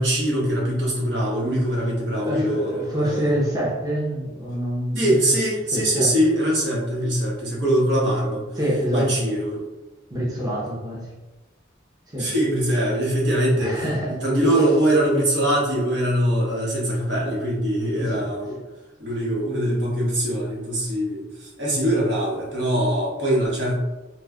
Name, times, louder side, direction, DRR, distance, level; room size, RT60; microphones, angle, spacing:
voice 1, 0.0-3.4 4.9-8.5 8.9-9.7 12.2-18.6 19.0-23.8, right 1 dB, 70° right, -4 dB, 1.1 m, -22 dB
voice 2, 2.2-5.2 5.7-6.1 8.6-9.2 10.1-11.1 12.1-12.3 13.5-14.2 18.0-18.3, equal, 20° right, -6 dB, 0.7 m, -26 dB
3.1 x 2.1 x 3.5 m, 1.1 s
head